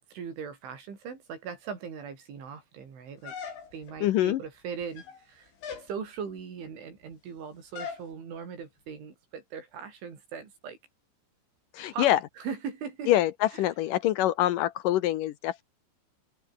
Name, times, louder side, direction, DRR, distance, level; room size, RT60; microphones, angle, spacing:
voice 1, 0.1-3.4 3.7-5.5 5.8-10.8 11.9-12.1 12.4-13.1, right 6 dB, 85° right, 7.8 m, -39 dB
sound 1, 3.2-4.0 4.8-5.2 5.6-5.9 7.8-8.1, left 6 dB, 70° left, 7.2 m, -39 dB
voice 2, 4.0-4.4 11.7-12.2 13.1-15.6, left 13 dB, 90° left, 1.8 m, -25 dB
open air
omnidirectional pair, 5.3 m